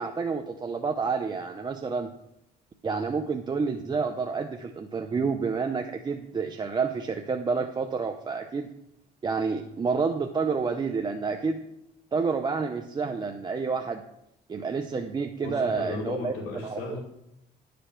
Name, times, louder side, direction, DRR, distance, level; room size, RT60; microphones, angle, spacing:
voice 1, 0.0-2.1 2.8-8.7 9.2-11.6 12.1-14.0 14.5-16.3 16.6-16.8, right 5 dB, 25° right, 4 dB, 0.6 m, -29 dB
voice 2, 15.4-17.0, left 3 dB, 85° left, -5 dB, 2.7 m, -35 dB
11.5 x 5.1 x 5.9 m, 0.80 s
cardioid pair, 110°, 17 cm